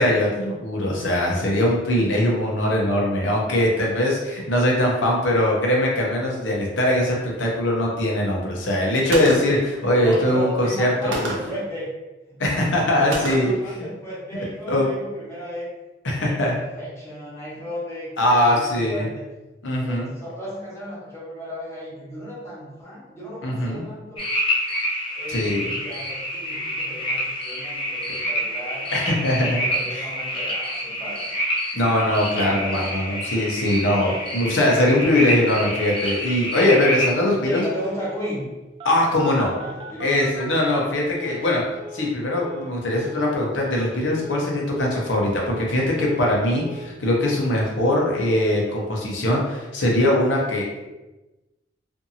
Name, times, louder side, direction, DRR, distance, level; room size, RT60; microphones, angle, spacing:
voice 1, 0.0-11.3 12.4-13.8 14.7-14.9 16.0-16.5 18.2-19.1 19.6-20.1 23.4-23.8 25.3-25.7 28.9-29.6 29.9-30.0 31.7-37.6 38.8-39.5 40.0-41.6 41.9-50.9, left 1 dB, 85° left, -2 dB, 0.7 m, -21 dB
Gunshot gunfire, 9.1-9.7 11.1-11.6 13.1-13.7, right 1 dB, 85° right, 0.6 m, -28 dB
voice 2, 10.0-11.9 12.3-12.4 13.0-15.7 16.1-19.2 19.8-24.2 25.1-28.9 29.6-31.3 32.4-33.2 37.4-38.5 39.3-40.3, equal, 15° left, -8 dB, 1.0 m, -34 dB
sound 1, 24.2-37.1, equal, 30° left, 0.5 m, -27 dB
Telephone, 32.8-32.9 33.1-33.6 33.8-33.9 34.2-34.6 35.0-35.1 35.5-36.2 37.0-37.2 37.5-38.2 38.8-41.5 41.8-42.1 42.4-42.7 43.0-43.3 43.6-43.9 44.2-44.5 44.8-45.1 45.4-46.3 46.6-46.9 47.2-47.4, left 1 dB, 30° right, 0.3 m, -39 dB
2.6 x 2.5 x 2.7 m, 1.1 s
head